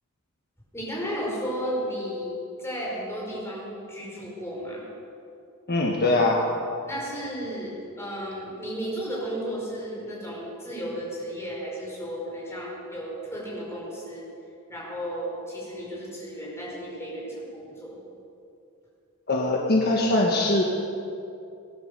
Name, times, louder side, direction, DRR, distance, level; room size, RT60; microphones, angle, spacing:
voice 1, 0.7-2.3 2.6-4.8 6.8-14.3 14.7-18.0, equal, 10° left, -5 dB, 5.1 m, -34 dB
voice 2, 5.7-6.4 19.3-20.6, left 2 dB, 45° left, -1 dB, 1.5 m, -22 dB
18.5 x 11.5 x 6.6 m, 2.6 s
head